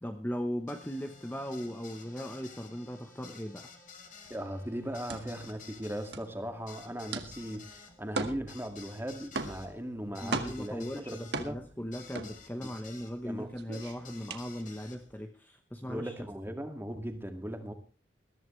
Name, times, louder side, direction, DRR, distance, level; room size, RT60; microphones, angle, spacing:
voice 1, 0.0-3.7 10.2-16.1, equal, 10° left, 5 dB, 1.0 m, -38 dB
sound 1, 0.7-13.1 13.7-15.0, left 5 dB, 40° left, 2.7 m, -53 dB
sound 2, 4.2-12.9 13.3-15.1, right 3 dB, 60° right, 1.8 m, -39 dB
voice 2, 4.3-11.6 12.6-12.7 13.2-13.5 15.9-17.7, equal, 10° right, 6 dB, 2.1 m, -38 dB
21.0 x 14.5 x 3.2 m, 0.35 s
head